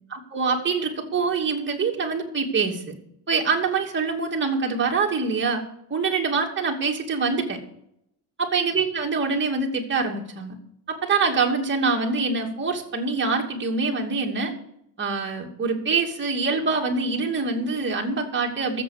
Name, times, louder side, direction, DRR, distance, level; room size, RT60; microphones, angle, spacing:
voice 1, 0.1-2.9 3.3-5.6 5.9-7.6 8.4-10.6 10.9-14.5 15.0-18.8, right 4 dB, 30° right, 0 dB, 2.7 m, -25 dB
14.0 x 7.8 x 6.7 m, 0.74 s
cardioid pair, 125°, 40 cm